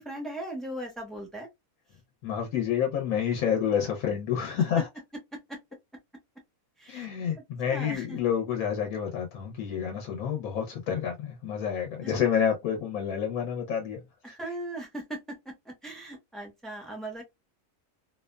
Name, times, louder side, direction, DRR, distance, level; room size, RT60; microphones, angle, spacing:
voice 1, 0.0-1.5 4.8-4.9 5.3-5.6 6.8-7.1 7.7-8.2 12.0-12.1 14.2-17.2, right 1 dB, ahead, 0.4 m, -38 dB
voice 2, 2.2-4.9 6.9-14.0 14.3-14.4, left 8 dB, 90° left, 1.1 m, -29 dB
2.7 x 2.1 x 2.2 m
omnidirectional pair, 1.4 m